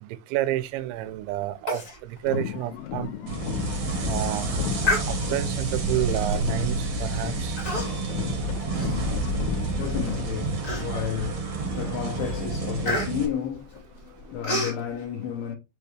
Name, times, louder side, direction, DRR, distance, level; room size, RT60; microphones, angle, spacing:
voice 1, 0.0-3.1 4.1-4.7 5.1-7.6, right 14 dB, 80° right, 2.8 m, -30 dB
Human voice, 1.7-2.0 2.3-2.4 2.9-3.0 3.6-3.8 4.8-5.5 6.3-6.5 7.6-8.2 8.5-9.6 10.1-10.2 10.6-11.2 11.7-11.9 12.2-14.8, left 2 dB, 30° left, 1.5 m, -30 dB
sound 1, 2.2-6.1 6.3-10.3, left 11 dB, 90° left, 3.2 m, -35 dB
sound 2, 3.3-13.3, right 2 dB, 40° right, 2.4 m, -29 dB
voice 2, 9.0-15.6, left 9 dB, 75° left, 2.4 m, -32 dB
6.7 x 5.4 x 3.2 m
omnidirectional pair, 5.6 m